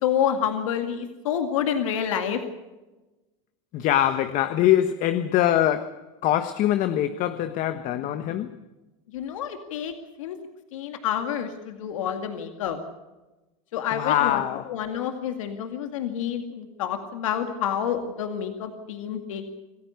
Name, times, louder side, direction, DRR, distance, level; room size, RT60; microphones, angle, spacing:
voice 1, 0.0-2.4 9.1-9.9 10.2-10.4 10.7-12.8 13.7-14.4 14.7-19.4, left 9 dB, 85° left, 2.2 m, -28 dB
voice 2, 3.7-8.6 13.9-14.7, left 12 dB, 50° left, 1.3 m, -23 dB
26.5 x 15.0 x 8.2 m
supercardioid pair, 105°, 16 cm